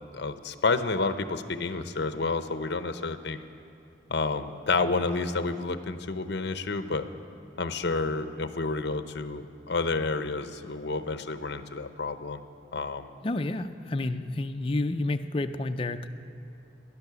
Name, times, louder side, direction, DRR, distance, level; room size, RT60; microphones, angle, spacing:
voice 1, 0.1-3.4 4.1-7.1 7.6-12.4 12.7-13.1, left 3 dB, 60° left, 10 dB, 0.7 m, -30 dB
voice 2, 13.2-16.1, left 2 dB, 30° left, 7 dB, 0.5 m, -30 dB
15.5 x 11.0 x 6.9 m, 2.5 s
head